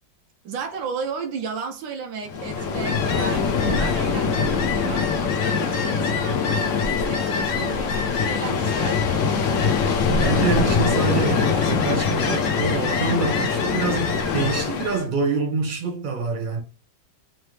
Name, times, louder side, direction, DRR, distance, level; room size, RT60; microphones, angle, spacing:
voice 1, 0.4-9.3, right 6 dB, 85° right, 1.5 m, -34 dB
Ocean, 2.3-15.1, left 5 dB, 65° left, 0.8 m, -23 dB
voice 2, 10.1-16.6, right 4 dB, 30° right, 1.2 m, -26 dB
3.7 x 3.1 x 3.2 m
omnidirectional pair, 2.0 m